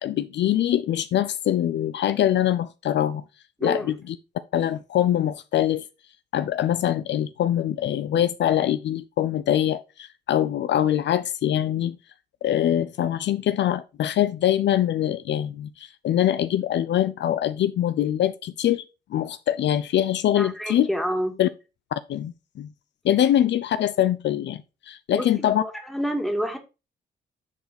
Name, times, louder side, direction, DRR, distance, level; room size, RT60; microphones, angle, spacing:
voice 1, 0.0-3.2 3.6-4.2 4.5-5.8 6.3-12.0 12.4-18.8 19.1-20.9 21.4-21.5 21.9-22.7 23.0-25.6, left 11 dB, 65° left, 0.6 m, -23 dB
voice 2, 3.6-3.9 20.4-21.4 25.1-26.6, equal, ahead, 2.1 m, -28 dB
9.9 x 4.0 x 4.2 m
cardioid pair, 90°, 20 cm